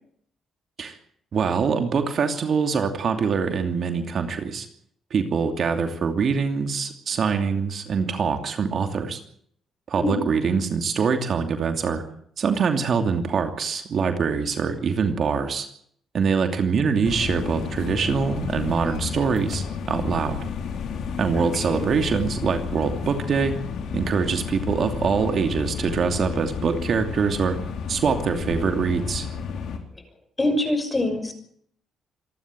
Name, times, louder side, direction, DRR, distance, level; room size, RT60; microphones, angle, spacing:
voice 1, 1.3-4.7 5.1-9.2 9.9-12.0 12.4-15.7 16.1-20.4 21.2-23.5 23.9-27.6 27.9-29.3, right 5 dB, 55° right, 6 dB, 2.8 m, -24 dB
sound 1, 17.0-29.8, left 6 dB, 75° left, 3.9 m, -31 dB
voice 2, 21.4-21.8 30.4-31.3, left 1 dB, 20° left, 8 dB, 6.2 m, -24 dB
26.5 x 11.5 x 9.1 m, 0.64 s
cardioid pair, 90°, 0 cm